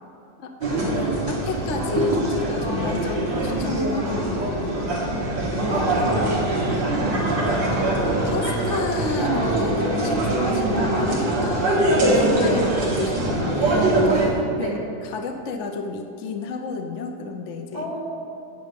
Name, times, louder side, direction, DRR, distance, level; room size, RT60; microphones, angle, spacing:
voice 1, 0.4-5.2 7.0-17.9, left 4 dB, 55° left, 4 dB, 0.8 m, -32 dB
sound 1, 0.6-14.3, right 1 dB, 60° right, 2.6 m, -23 dB
voice 2, 5.7-6.8 12.3-12.7 14.6-14.7 17.7-18.0, equal, 15° right, -3 dB, 1.8 m, -31 dB
15.0 x 9.3 x 5.2 m, 2.7 s
omnidirectional pair, 2.3 m